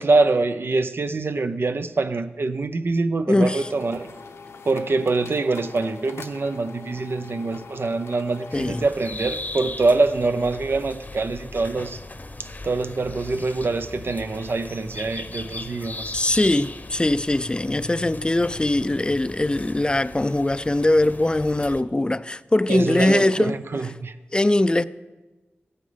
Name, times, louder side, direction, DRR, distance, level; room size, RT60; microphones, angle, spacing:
voice 1, 0.0-4.1 4.7-12.0 12.4-16.1 22.7-24.1, right 3 dB, 60° right, 0.6 m, -24 dB
voice 2, 3.3-3.7 8.5-8.8 16.1-23.6 24.3-24.8, left 1 dB, 20° left, 0.4 m, -21 dB
sound 1, 3.5-8.9, left 4 dB, 85° left, 0.7 m, -42 dB
sound 2, 8.5-21.8, left 2 dB, 40° left, 0.8 m, -38 dB
15.5 x 9.1 x 3.4 m
cardioid pair, 40°, 4 cm